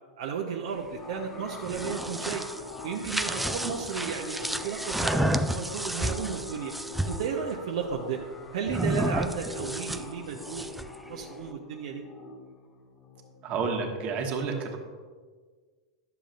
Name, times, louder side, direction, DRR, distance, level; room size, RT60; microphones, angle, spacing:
voice 1, 0.2-2.5 2.8-6.7 7.1-8.2 8.5-10.7 11.1-12.1 14.5-14.6, right 6 dB, 70° right, 0 dB, 0.7 m, -33 dB
sound 1, 0.9-14.1, left 2 dB, 35° left, 1.3 m, -43 dB
sound 2, 1.5-7.3 8.7-11.0, right 1 dB, 5° right, 0.3 m, -31 dB
voice 2, 13.4-14.8, right 4 dB, 45° right, 2 dB, 1.3 m, -30 dB
10.0 x 6.9 x 2.5 m, 1.5 s
hypercardioid pair, 105°, 3 cm